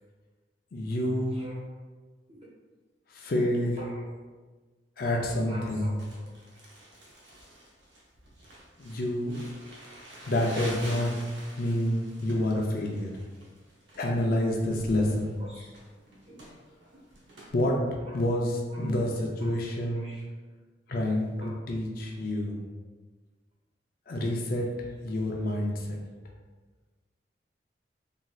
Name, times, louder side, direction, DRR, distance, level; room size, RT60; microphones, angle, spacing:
voice 1, 0.7-1.4 3.1-3.8 5.0-5.9 8.8-9.4 10.2-11.1 11.6-13.1 14.0-15.3 17.5-17.8 18.1-20.0 20.9-22.6 24.1-24.7 25.0-26.0, left 1 dB, 55° left, 0 dB, 0.4 m, -28 dB
voice 2, 1.3-1.7 3.8-4.2 5.5-6.2 15.4-15.7 16.3-16.4 18.0-18.2 18.7-18.9 19.4-20.2 21.4-21.6 22.2-22.3, right 1 dB, 35° right, -4 dB, 0.7 m, -46 dB
Crumpling crinkling, 6.0-17.5, equal, 80° right, 0.6 m, -46 dB
3.1 x 2.7 x 2.3 m, 1.3 s
head